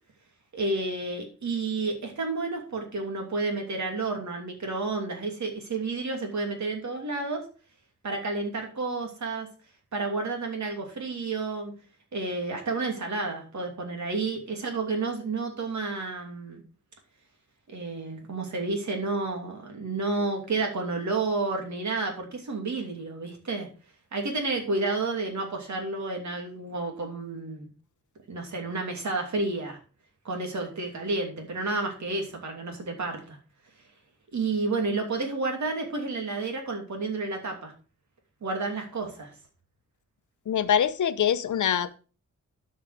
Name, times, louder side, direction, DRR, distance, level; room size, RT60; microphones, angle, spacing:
voice 1, 0.5-7.5 8.0-9.5 9.9-11.7 12.1-16.6 17.7-23.7 24.1-27.7 28.3-29.8 30.2-33.4 34.3-37.7 38.4-39.3, right 3 dB, 70° right, 2.8 m, -30 dB
voice 2, 40.5-42.0, left 9 dB, 80° left, 0.7 m, -24 dB
12.0 x 5.6 x 4.9 m
wide cardioid pair, 175°, 30 cm